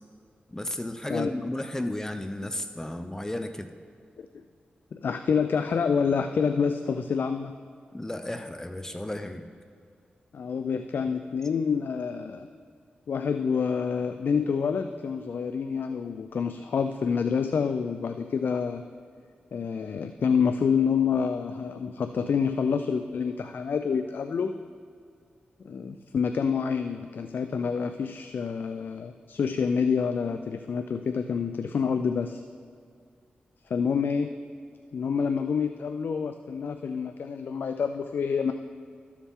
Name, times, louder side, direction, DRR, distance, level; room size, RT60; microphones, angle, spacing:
voice 1, 0.5-3.7 7.9-9.5, left 1 dB, 15° left, 8 dB, 0.6 m, -33 dB
voice 2, 4.9-7.5 10.3-12.5 13.1-18.8 19.5-24.5 25.6-32.4 33.7-34.3 34.9-38.5, left 6 dB, 70° left, 8 dB, 0.4 m, -27 dB
13.5 x 7.2 x 3.6 m, 2.3 s
cardioid pair, 65°, 3 cm